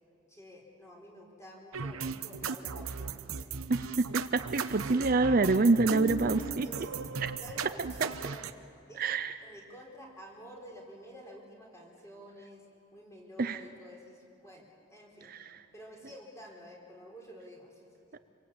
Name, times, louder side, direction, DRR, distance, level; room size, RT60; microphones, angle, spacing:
voice 1, 0.3-3.6 6.4-7.1 7.4-8.4 8.9-9.0 9.4-12.6 12.9-15.4 15.7-18.2, equal, 15° left, -1 dB, 4.7 m, -50 dB
sound 1, 1.7-8.5, right 6 dB, 90° right, 0.9 m, -37 dB
voice 2, 3.7-6.7 7.2-7.3 8.0-8.1 9.0-9.3 13.4-13.6 15.3-15.6, right 3 dB, 45° right, 10 dB, 0.6 m, -27 dB
sound 2, 5.9-9.7, equal, 35° left, 4.1 m, -45 dB
27.0 x 23.0 x 8.6 m, 2.5 s
head